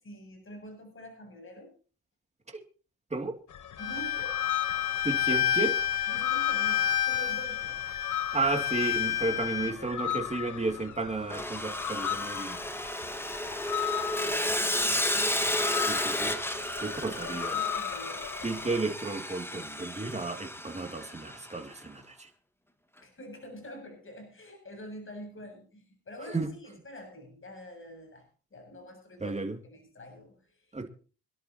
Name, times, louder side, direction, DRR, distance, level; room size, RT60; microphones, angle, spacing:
voice 1, 0.0-1.7 3.8-4.4 5.3-5.4 6.1-7.8 9.3-9.9 14.1-15.3 17.0-18.3 23.0-29.4 29.6-30.8, equal, 35° left, 4 dB, 7.6 m, -46 dB
sound 1, 3.5-18.8, left 11 dB, 50° left, 1.1 m, -37 dB
Bowed string instrument, 3.8-9.7, left 12 dB, 85° left, 3.1 m, -29 dB
voice 2, 5.0-5.8 8.3-12.6 15.8-16.3 16.8-17.6 18.4-22.3 26.3-26.5 29.2-29.6 30.7-30.9, right 3 dB, 15° right, 4 dB, 2.7 m, -33 dB
Sawing, 11.3-21.5, left 1 dB, 5° left, 1.8 m, -32 dB
26.5 x 11.0 x 2.9 m, 0.38 s
cardioid pair, 100°, 38 cm